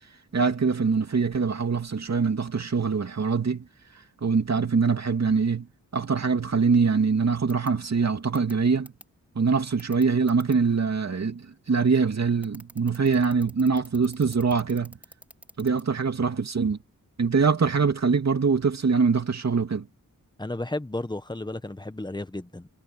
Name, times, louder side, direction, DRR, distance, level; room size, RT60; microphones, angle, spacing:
voice 1, 0.3-3.6 4.2-5.7 5.9-8.9 9.3-15.0 15.6-16.8 17.2-19.9, right 5 dB, 55° right, 2.7 m, -23 dB
sound 1, 7.5-7.7 8.3-8.5 8.8-9.0 9.8-10.5 12.4-15.8, equal, 5° right, 4.9 m, -47 dB
voice 2, 20.4-22.7, left 2 dB, 15° left, 1.3 m, -33 dB
wide cardioid pair, 85°, 31 cm